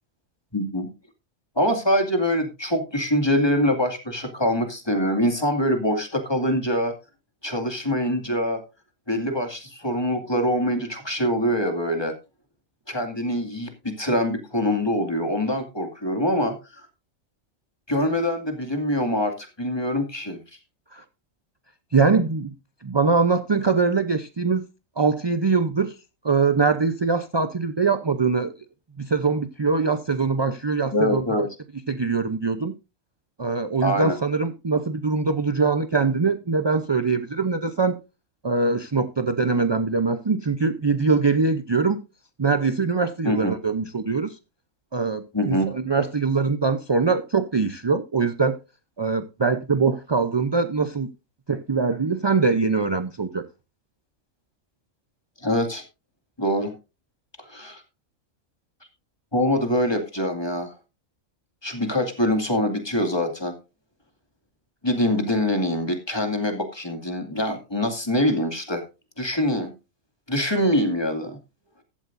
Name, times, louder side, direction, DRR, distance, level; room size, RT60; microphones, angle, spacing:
voice 1, 0.5-0.9 1.6-6.9 7.4-8.6 9.1-12.2 12.9-16.5 17.9-20.4 30.9-31.5 33.8-34.2 43.2-43.5 45.3-45.7 55.4-55.8 56.4-56.7 57.5-57.8 59.3-60.7 61.6-63.5 64.8-68.8 69.2-69.7 70.3-71.4, equal, 20° left, 2.2 m, -24 dB
voice 2, 21.9-22.5 22.8-24.6 25.0-26.0 26.2-28.5 29.0-31.2 31.9-32.7 33.4-38.0 38.4-42.0 42.4-44.4 44.9-48.6 49.0-51.1 51.5-53.4, right 4 dB, 35° right, 0.4 m, -22 dB
15.0 x 12.5 x 2.6 m
omnidirectional pair, 1.4 m